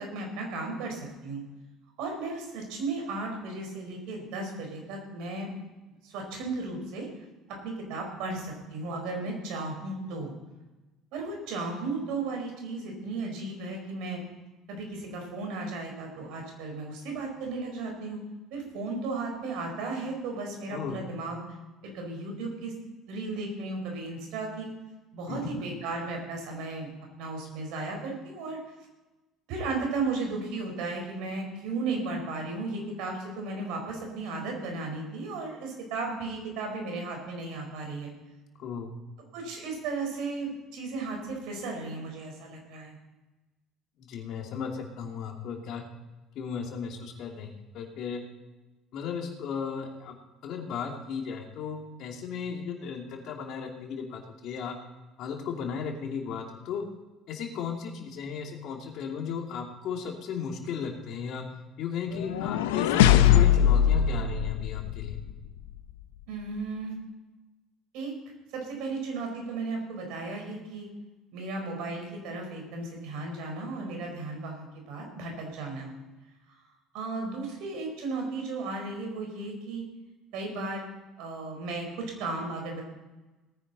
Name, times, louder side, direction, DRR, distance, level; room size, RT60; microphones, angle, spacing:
voice 1, 0.0-1.4 2.0-5.5 6.0-7.1 7.6-10.3 11.1-14.2 14.7-18.2 18.5-21.4 21.8-22.7 23.1-24.7 25.1-26.9 27.2-28.6 29.5-38.1 39.3-43.0 66.3-66.9 67.9-68.1 68.5-70.9 71.3-75.9 76.9-79.8 80.3-80.8 81.2-82.8, right 3 dB, 70° right, 2 dB, 4.6 m, -35 dB
voice 2, 20.7-21.0 25.3-25.5 38.6-39.0 44.0-45.8 46.3-48.2 48.9-50.1 50.4-54.7 55.2-56.8 57.3-61.4 61.8-65.2, left 6 dB, 60° left, 2 dB, 2.6 m, -35 dB
sound 1, 62.1-65.3, left 10 dB, 80° left, 0.7 m, -21 dB
18.5 x 9.9 x 4.1 m, 1.1 s
hypercardioid pair, 60°, 0 cm